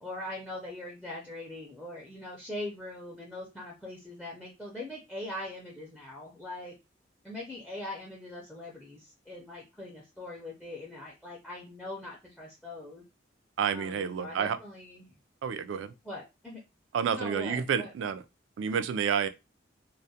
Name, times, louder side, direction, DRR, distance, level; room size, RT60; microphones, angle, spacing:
voice 1, 0.0-6.7 7.2-13.0 13.7-15.1 16.0-16.6 17.1-18.1, left 1 dB, 5° left, 0.4 m, -41 dB
voice 2, 13.6-14.6 15.4-15.9 16.9-18.2 18.6-19.3, right 7 dB, 80° right, 0.3 m, -29 dB
2.3 x 2.1 x 2.6 m
head